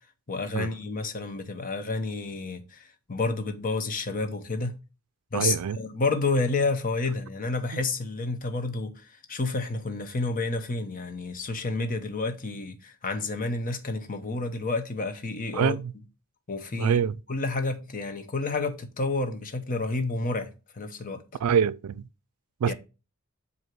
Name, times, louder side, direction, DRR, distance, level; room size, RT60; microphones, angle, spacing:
voice 1, 0.3-4.7 5.3-15.8 16.5-17.0 17.3-21.2 22.7-22.8, left 3 dB, 40° left, 0.8 m, -30 dB
voice 2, 5.3-5.8 15.5-15.9 16.8-17.1 21.4-22.0 22.6-22.7, right 7 dB, 80° right, 0.4 m, -25 dB
7.8 x 2.8 x 4.6 m
head